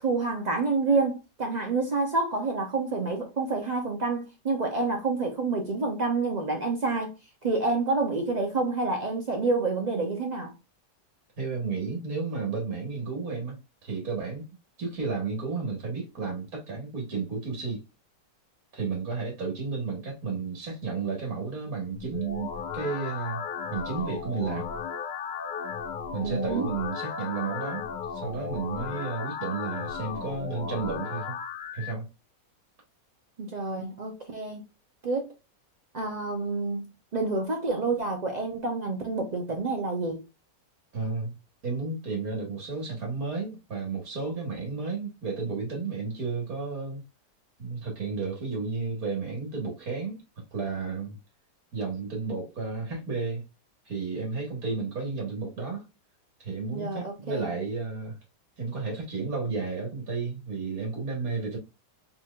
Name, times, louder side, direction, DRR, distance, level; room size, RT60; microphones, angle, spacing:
voice 1, 0.0-7.1 7.4-10.5 26.2-26.7 33.4-34.6 35.0-35.3 35.9-40.2 56.7-57.5, right 3 dB, 75° right, 0.4 m, -28 dB
voice 2, 11.4-14.4 14.8-17.9 18.7-23.4 23.7-24.7 26.1-31.4 31.7-32.1 40.9-41.3 41.6-47.0 47.6-50.2 50.5-51.2 51.7-53.4 53.9-55.8 56.4-58.2 58.6-61.6, right 4 dB, 60° right, 2.0 m, -32 dB
sound 1, 21.9-31.9, left 6 dB, 80° left, 1.3 m, -35 dB
4.4 x 4.1 x 2.4 m
omnidirectional pair, 1.8 m